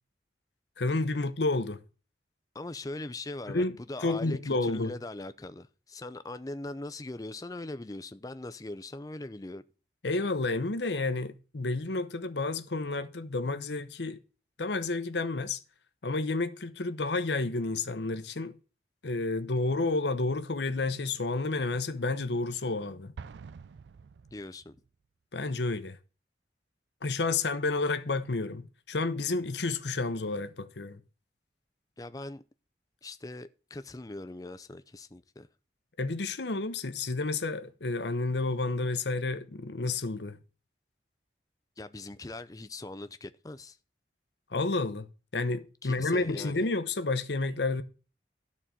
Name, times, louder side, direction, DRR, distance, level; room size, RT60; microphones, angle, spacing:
voice 1, 0.8-1.8 3.5-3.7 4.0-4.9 10.0-14.2 14.6-15.6 16.0-18.5 19.0-23.1 25.3-26.0 27.0-31.0 36.0-40.4 44.5-47.8, left 3 dB, 75° left, 0.9 m, -30 dB
voice 2, 2.5-9.6 24.3-24.8 32.0-32.4 33.0-35.5 41.8-43.8 45.8-46.7, left 2 dB, 20° left, 0.5 m, -41 dB
Explosion, 23.2-24.9, right 5 dB, 80° right, 0.4 m, -47 dB
12.5 x 4.3 x 7.6 m
head